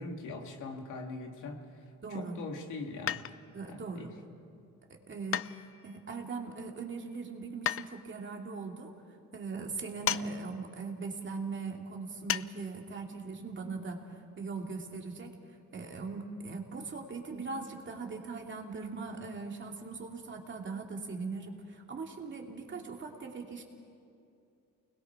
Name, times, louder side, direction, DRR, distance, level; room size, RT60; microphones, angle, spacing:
voice 1, 0.0-1.6 2.1-3.2 3.6-4.1, left 3 dB, 80° left, 2 dB, 2.4 m, -41 dB
voice 2, 2.0-2.4 3.5-4.1 5.1-8.9 9.3-14.0 14.4-15.3 15.7-23.6, right 4 dB, 40° right, 1 dB, 2.7 m, -40 dB
sound 1, 3.1-3.6 5.3-6.0 7.7-7.9 10.1-10.3 10.6-10.7 12.3-12.5 12.8-12.9, left 10 dB, 45° left, 0.5 m, -33 dB
29.5 x 21.0 x 4.7 m, 2.5 s
cardioid pair, 90°, 30 cm